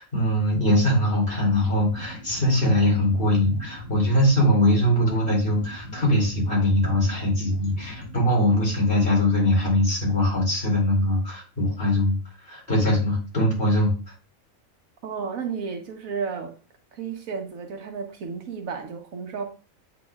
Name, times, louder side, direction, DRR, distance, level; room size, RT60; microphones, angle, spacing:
voice 1, 0.0-12.1 12.4-13.9, left 1 dB, 40° left, 2.9 m, -22 dB
sound 1, 1.3-8.8, left 1 dB, 80° left, 4.1 m, -40 dB
voice 2, 15.0-16.5 16.9-19.4, right 5 dB, 85° right, 1.4 m, -32 dB
8.3 x 5.1 x 2.3 m
omnidirectional pair, 1.4 m